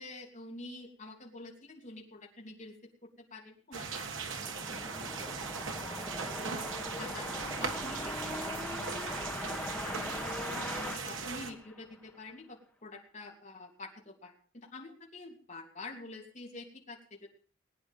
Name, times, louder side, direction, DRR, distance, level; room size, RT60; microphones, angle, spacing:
voice 1, 0.0-2.8 3.0-4.3 4.7-5.3 5.9-6.6 7.0-7.3 7.6-9.2 9.5-10.3 10.7-17.3, left 2 dB, 40° left, 0 dB, 3.0 m, -48 dB
sound 1, 3.7-12.1, left 1 dB, 5° left, 2.0 m, -40 dB
sound 2, 3.7-11.5, right 5 dB, 85° right, 1.5 m, -39 dB
20.0 x 9.7 x 5.4 m, 0.43 s
head